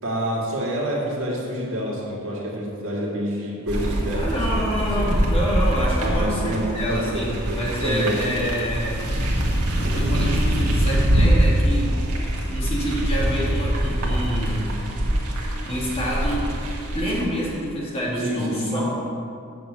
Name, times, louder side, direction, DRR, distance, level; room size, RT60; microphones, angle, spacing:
voice 1, 0.0-5.1 6.0-8.2 18.2-18.8, equal, 60° right, -4 dB, 2.1 m, -28 dB
sound 1, 3.7-17.2, right 1 dB, 85° right, 1.5 m, -23 dB
voice 2, 4.2-9.1 9.8-12.1 12.5-14.8 15.2-15.3 15.6-16.5 16.9-18.8, equal, 25° left, -5 dB, 2.0 m, -27 dB
6.7 x 6.4 x 7.5 m, 2.4 s
head